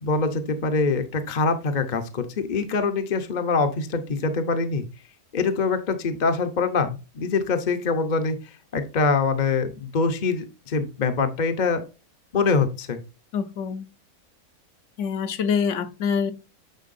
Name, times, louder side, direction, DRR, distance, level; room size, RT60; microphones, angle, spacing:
voice 1, 0.0-4.8 5.3-8.4 8.7-11.8 12.3-13.0, left 4 dB, 40° left, 0.8 m, -24 dB
voice 2, 13.3-13.8 15.0-16.3, left 6 dB, 60° left, 1.0 m, -25 dB
9.1 x 4.5 x 2.6 m
omnidirectional pair, 1.6 m